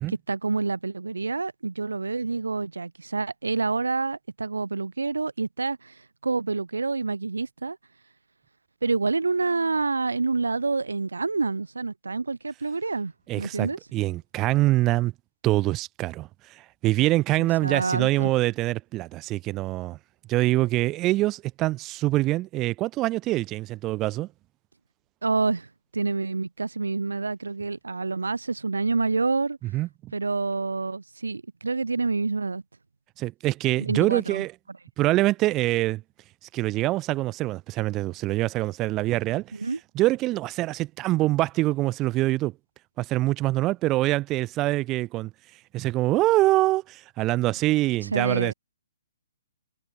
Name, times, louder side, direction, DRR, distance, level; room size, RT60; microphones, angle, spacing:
voice 1, 0.3-5.9 6.2-7.8 8.8-13.1 13.4-13.8 17.4-18.3 25.2-25.7 25.9-29.6 30.1-32.6 33.8-34.4 39.6-39.8 48.1-48.5, right 3 dB, 70° right, 1.9 m, -27 dB
voice 2, 13.3-15.1 15.4-20.0 20.3-24.3 29.7-30.1 33.2-34.5 35.0-36.0 36.5-39.5 39.9-42.5 43.0-45.3 45.7-48.5, right 17 dB, 20° right, 1.6 m, -24 dB
figure-of-eight pair, 125°, 0 cm